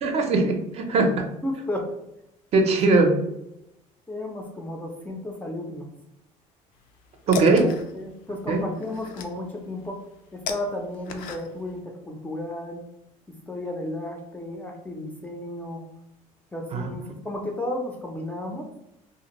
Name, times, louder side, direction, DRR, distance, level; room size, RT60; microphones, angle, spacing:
voice 1, 0.0-1.2 2.5-3.2 7.3-7.7 8.5-8.6 16.7-16.9, right 3 dB, 45° right, 4 dB, 0.5 m, -20 dB
voice 2, 1.4-1.9 2.6-2.7 4.1-5.9 7.3-10.0 10.3-12.8 13.3-15.8 16.5-18.7, left 1 dB, 10° left, 1 dB, 0.4 m, -33 dB
sound 1, 6.8-11.8, left 6 dB, 75° left, 0.4 m, -37 dB
2.5 x 2.4 x 2.9 m, 0.84 s
cardioid pair, 135°, 15 cm